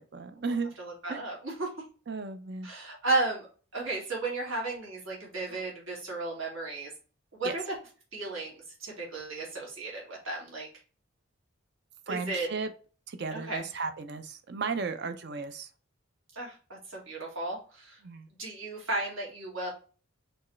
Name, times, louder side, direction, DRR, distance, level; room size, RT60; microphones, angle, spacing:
voice 1, 0.0-0.8 1.1-1.2 2.1-2.7 5.5-5.6 7.4-7.5 12.1-12.7 13.1-15.7 18.0-18.3, right 4 dB, 50° right, 8 dB, 0.5 m, -35 dB
voice 2, 0.8-1.7 2.6-3.5 3.7-6.9 7.3-7.6 8.1-10.7 12.1-12.5 13.3-13.6 16.3-18.0 18.4-19.7, right 2 dB, 80° right, -3 dB, 2.3 m, -34 dB
4.5 x 3.2 x 3.1 m, 0.37 s
head